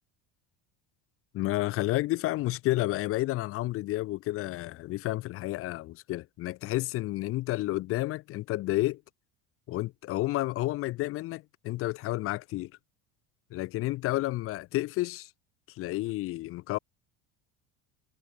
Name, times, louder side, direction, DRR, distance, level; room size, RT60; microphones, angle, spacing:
voice 1, 1.3-9.0 9.7-12.7 13.5-15.3 15.8-16.8, left 17 dB, 35° left, 0.5 m, -31 dB
cardioid pair, 155°, 40 cm